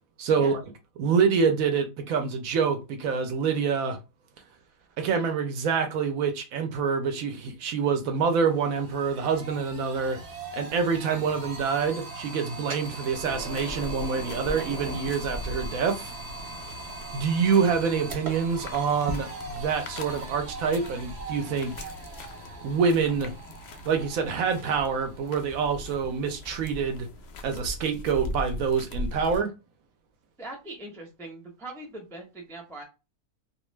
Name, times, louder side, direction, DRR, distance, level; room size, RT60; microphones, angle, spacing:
voice 1, 0.2-0.6 1.0-4.0 5.0-10.2 10.5-16.1 17.1-21.9 22.6-23.3 23.9-27.1 27.4-29.5, right 6 dB, 70° right, 0.9 m, -26 dB
sound 1, 7.7-7.8 8.1-27.1, right 3 dB, 50° right, 1.0 m, -40 dB
sound 2, 13.1-29.4, left 2 dB, 65° left, 0.6 m, -40 dB
voice 2, 30.4-32.8, right 1 dB, 5° left, 0.4 m, -41 dB
2.5 x 2.2 x 3.1 m
omnidirectional pair, 1.6 m